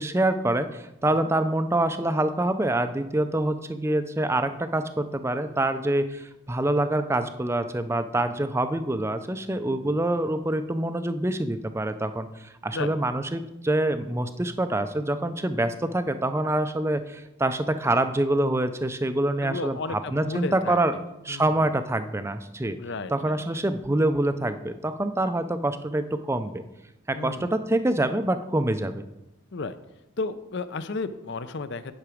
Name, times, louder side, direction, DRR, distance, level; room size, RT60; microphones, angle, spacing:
voice 1, 0.0-20.9 21.2-22.8 23.1-26.6 27.1-29.0, right 1 dB, 10° right, 10 dB, 0.4 m, -26 dB
voice 2, 19.4-21.0 21.3-21.5 22.7-23.4 27.1-27.5 29.5-29.8 30.2-31.9, left 3 dB, 55° left, 12 dB, 0.5 m, -33 dB
9.7 x 5.9 x 5.0 m, 0.92 s
head